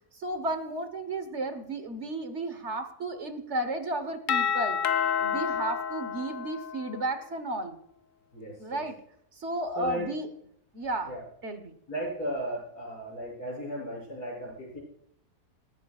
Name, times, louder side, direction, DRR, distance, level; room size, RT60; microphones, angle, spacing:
voice 1, 0.1-4.8 5.2-7.8 8.6-9.0 9.4-10.3 10.7-11.1 11.4-11.8, right 2 dB, 50° right, 8 dB, 1.4 m, -33 dB
Doorbell, 4.3-7.1, left 7 dB, 60° left, 1.0 m, -29 dB
voice 2, 8.3-8.8 9.8-10.1 11.0-11.2 11.9-14.8, equal, 80° left, -3 dB, 7.9 m, -35 dB
19.0 x 15.5 x 2.4 m, 0.70 s
omnidirectional pair, 1.6 m